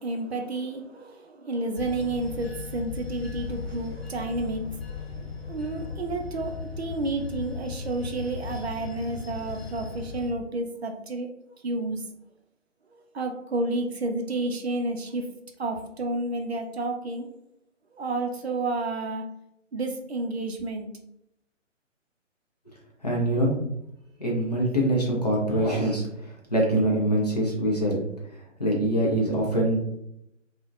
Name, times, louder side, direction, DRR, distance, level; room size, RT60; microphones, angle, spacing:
voice 1, 0.0-11.3 11.6-12.0 13.1-15.3 15.6-17.3 17.9-19.3 19.7-20.9, right 2 dB, 55° right, 4 dB, 0.4 m, -31 dB
Bell / Train, 1.8-10.3, left 5 dB, 55° left, 0.8 m, -37 dB
voice 2, 23.0-23.5 24.2-28.0 28.6-29.8, right 1 dB, 35° left, -3 dB, 0.4 m, -24 dB
2.5 x 2.1 x 2.3 m, 0.80 s
figure-of-eight pair, 145°, 38 cm